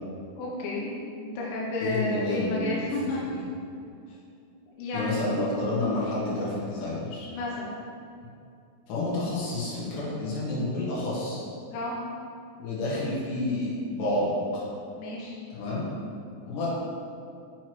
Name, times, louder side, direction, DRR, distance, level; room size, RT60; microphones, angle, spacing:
voice 1, 0.4-0.9 1.2-3.3 4.8-5.3 7.3-7.7 11.7-11.9 15.0-15.3, left 2 dB, 90° left, -4 dB, 3.3 m, -31 dB
voice 2, 1.8-2.8 4.9-7.3 8.9-11.4 12.6-14.6 15.5-15.9 16.5-16.7, left 2 dB, 65° left, -8 dB, 3.6 m, -29 dB
6.9 x 6.1 x 3.1 m, 2.5 s
omnidirectional pair, 5.5 m